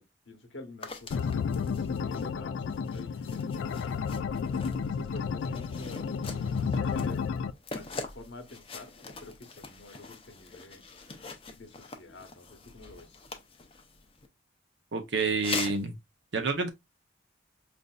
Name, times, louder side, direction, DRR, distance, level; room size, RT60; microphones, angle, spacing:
voice 1, 0.0-1.3 1.7-4.0 4.9-6.1 6.6-7.2 7.7-10.8 11.6-13.3, left 2 dB, 65° left, 0.9 m, -48 dB
sound 1, 0.8-14.3 15.3-15.9, left 4 dB, 30° left, 0.5 m, -43 dB
sound 2, 1.1-7.5, left 6 dB, 80° left, 0.3 m, -32 dB
voice 2, 14.9-15.9 16.3-16.7, right 4 dB, 65° right, 0.7 m, -28 dB
5.2 x 2.5 x 2.2 m
head